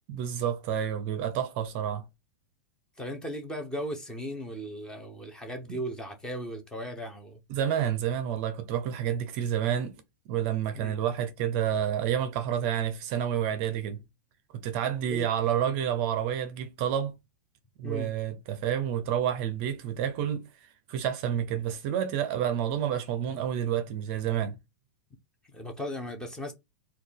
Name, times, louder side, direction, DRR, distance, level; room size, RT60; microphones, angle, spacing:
voice 1, 0.1-2.0 7.5-10.0 10.3-14.0 14.5-17.1 17.8-20.5 20.9-24.6, right 9 dB, 35° right, 0.5 m, -29 dB
voice 2, 3.0-7.4 10.7-11.0 15.1-15.3 17.8-18.1 25.5-26.5, equal, 5° left, 0.6 m, -37 dB
4.1 x 2.3 x 3.3 m
supercardioid pair, 165°, 11 cm